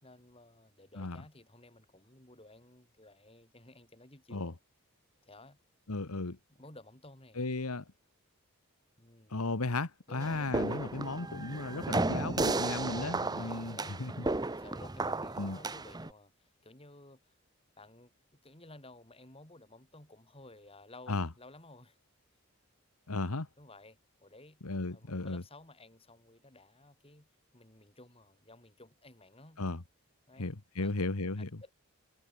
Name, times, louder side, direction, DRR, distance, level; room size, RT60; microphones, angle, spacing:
voice 1, 0.0-4.6 5.2-5.6 6.5-7.7 9.0-9.4 10.1-10.6 13.0-14.1 14.5-17.3 17.8-18.1 18.4-22.0 23.6-24.6 24.9-27.3 27.5-29.6 30.3-30.5 30.8-30.9 31.4-31.7, left 2 dB, 25° left, 3.9 m, -54 dB
voice 2, 5.9-6.4 7.4-7.8 9.3-14.1 15.4-15.6 21.1-21.3 23.1-23.5 24.6-25.4 29.6-29.8 30.4-31.5, left 2 dB, 85° left, 1.5 m, -35 dB
sound 1, 10.2-16.1, right 2 dB, 20° right, 0.7 m, -34 dB
head